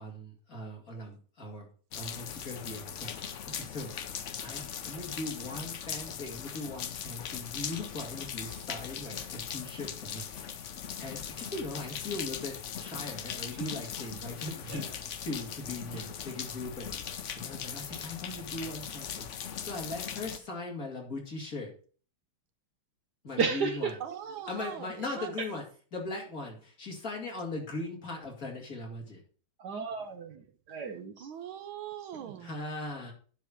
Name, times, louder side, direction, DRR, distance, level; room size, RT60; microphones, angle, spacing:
voice 1, 0.0-1.7 1.9-4.0 4.4-10.7 11.0-14.9 15.2-21.7 23.2-23.9 24.5-25.6 25.9-29.2 32.4-33.1, left 2 dB, 40° left, 2.9 m, -39 dB
sound 1, 1.9-20.4, left 8 dB, 75° left, 0.6 m, -40 dB
voice 2, 23.4-24.0 29.6-31.3 32.2-32.4, right 5 dB, 60° right, 1.3 m, -33 dB
voice 3, 24.0-25.3 30.0-30.1 31.2-32.5, right 9 dB, 75° right, 1.7 m, -41 dB
10.0 x 4.7 x 6.1 m
omnidirectional pair, 2.3 m